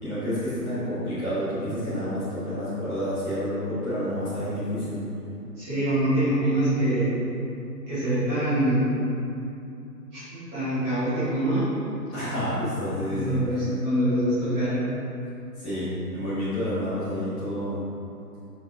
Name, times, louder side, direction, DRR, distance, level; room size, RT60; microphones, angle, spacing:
voice 1, 0.0-5.0 12.1-13.7 15.6-17.8, equal, 10° left, -15 dB, 1.5 m, -29 dB
voice 2, 5.6-7.1 7.9-8.8 10.1-10.2 10.5-11.7 13.1-14.8, right 1 dB, 10° right, -17 dB, 1.3 m, -24 dB
5.9 x 4.9 x 3.8 m, 2.7 s
figure-of-eight pair, 145°, 50 cm